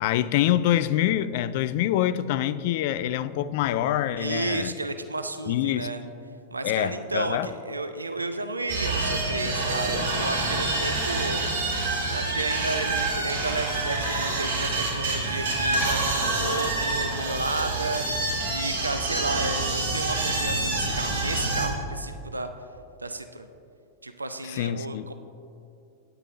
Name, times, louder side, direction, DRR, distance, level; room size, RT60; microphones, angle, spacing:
voice 1, 0.0-4.7 5.5-5.9 6.6-7.5 24.4-25.1, left 12 dB, 50° left, 15 dB, 0.3 m, -25 dB
voice 2, 4.2-6.0 6.5-11.5 12.1-18.1 18.5-22.5 23.0-23.5 24.0-25.1, right 2 dB, 80° right, 9 dB, 0.4 m, -32 dB
sound 1, 8.7-21.7, right 2 dB, 60° right, 1.7 m, -27 dB
9.8 x 9.2 x 3.8 m, 2.6 s
figure-of-eight pair, 90°, 0 cm